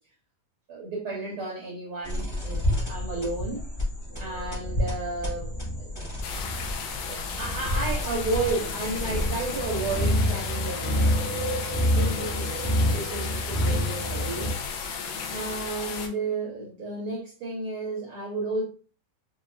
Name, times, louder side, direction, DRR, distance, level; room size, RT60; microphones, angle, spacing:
voice 1, 0.7-2.6 2.9-3.7 4.2-5.5 5.8-5.9 7.1-10.9 11.3-11.5 11.9-14.5 15.3-18.6, right 3 dB, 80° right, 1.2 m, -32 dB
sound 1, 2.0-10.5, left 1 dB, 20° left, 0.7 m, -32 dB
sound 2, 4.1-14.5, equal, 65° left, 0.7 m, -28 dB
sound 3, 6.2-16.1, left 6 dB, 85° left, 1.4 m, -34 dB
5.0 x 2.3 x 2.4 m
omnidirectional pair, 3.5 m